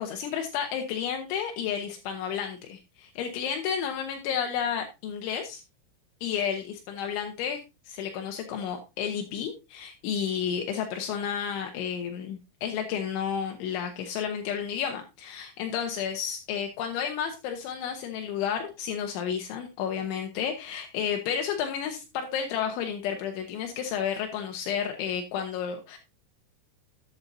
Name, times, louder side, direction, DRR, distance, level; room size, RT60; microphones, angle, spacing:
voice 1, 0.0-5.6 6.2-7.6 7.9-26.0, left 8 dB, 80° left, 4 dB, 3.4 m, -31 dB
12.0 x 8.7 x 2.7 m, 0.25 s
omnidirectional pair, 5.5 m